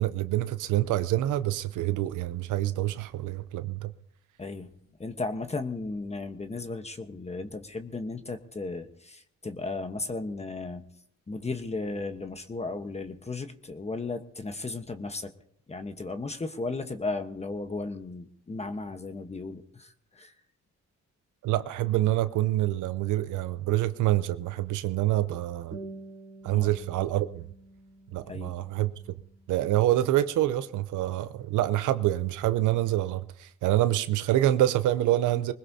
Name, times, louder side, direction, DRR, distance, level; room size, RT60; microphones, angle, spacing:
voice 1, 0.0-3.9 21.4-25.8 26.4-27.4 28.1-28.9 29.5-35.5, right 14 dB, 85° right, 0.7 m, -26 dB
voice 2, 4.4-4.7 5.0-10.8 11.3-15.3 15.7-20.3 26.5-26.7 28.2-28.5, left 3 dB, 20° left, 1.1 m, -35 dB
sound 1, 25.7-30.7, right 2 dB, 45° right, 3.7 m, -48 dB
21.0 x 20.5 x 2.8 m
cardioid pair, 90°, 30 cm